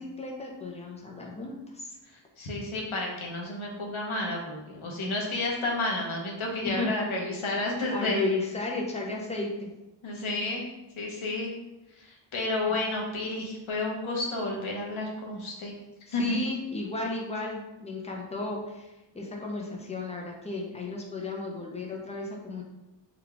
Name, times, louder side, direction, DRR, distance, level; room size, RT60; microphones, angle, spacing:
voice 1, 0.0-2.0 6.6-6.9 7.9-9.7 12.7-12.9 16.1-22.6, left 3 dB, 15° left, -1 dB, 0.5 m, -34 dB
voice 2, 2.4-8.2 10.0-10.7 11.0-11.5 12.0-15.7 16.1-16.3, left 2 dB, 85° left, -1 dB, 1.0 m, -31 dB
3.8 x 2.3 x 3.4 m, 0.99 s
wide cardioid pair, 165°, 47 cm